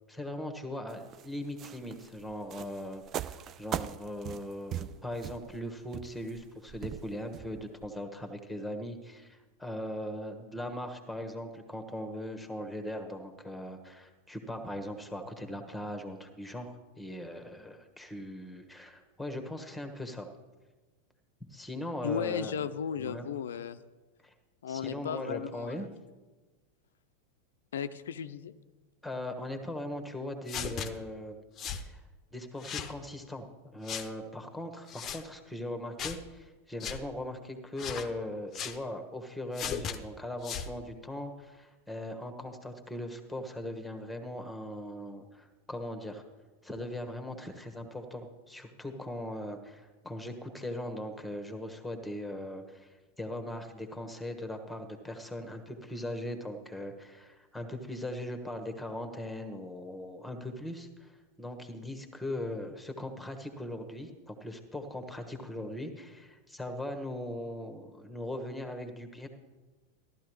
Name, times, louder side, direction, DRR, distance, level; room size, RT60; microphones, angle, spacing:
voice 1, 0.1-20.3 21.4-22.5 23.0-23.3 24.2-24.3 24.7-25.9 29.0-31.4 31.8-32.0 32.3-33.5 33.7-46.2 46.6-61.1 61.4-69.3, left 1 dB, ahead, 5 dB, 1.3 m, -39 dB
sound 1, 0.9-7.9, right 10 dB, 30° right, 0.3 m, -40 dB
voice 2, 22.0-23.8 24.6-25.9 27.7-28.5, left 7 dB, 65° left, 13 dB, 0.5 m, -35 dB
sound 2, 30.5-30.9 31.6-31.9 32.6-32.9 33.9-34.1 34.9-35.2 36.0-36.2 36.8-37.0 37.8-38.1 38.5-38.8 39.5-40.0 40.4-40.7, left 7 dB, 30° left, 0.7 m, -36 dB
14.5 x 12.0 x 3.1 m, 1.3 s
figure-of-eight pair, 90°, 0 cm